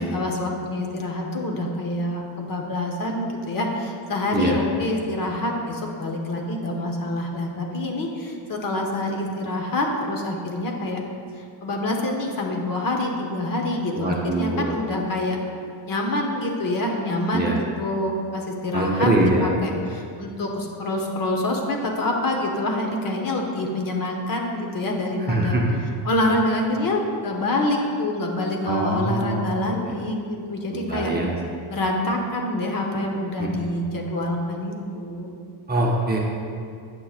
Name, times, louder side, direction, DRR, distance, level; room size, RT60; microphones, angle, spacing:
voice 1, 0.0-11.0 11.4-15.4 15.9-19.1 19.4-25.6 26.0-31.1 31.7-35.3, left 1 dB, 45° left, 1 dB, 0.8 m, -26 dB
voice 2, 13.9-14.8 17.3-17.6 18.7-19.5 25.3-25.6 28.7-30.0 30.7-31.6 33.4-33.6 35.7-36.2, right 2 dB, 20° right, -2 dB, 0.7 m, -24 dB
7.9 x 5.7 x 2.4 m, 2.3 s
cardioid pair, 105°, 49 cm